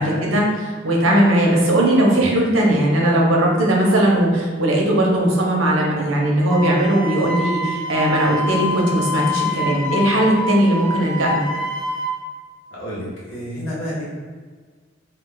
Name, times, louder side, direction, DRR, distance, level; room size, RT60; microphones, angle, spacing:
voice 1, 0.0-11.4, right 1 dB, 80° right, -2 dB, 0.7 m, -18 dB
Wind instrument woodwind instrument, 6.5-12.1, left 2 dB, 5° left, 0.4 m, -26 dB
voice 2, 12.7-14.0, equal, 85° left, -6 dB, 1.0 m, -30 dB
2.3 x 2.3 x 3.7 m, 1.5 s
head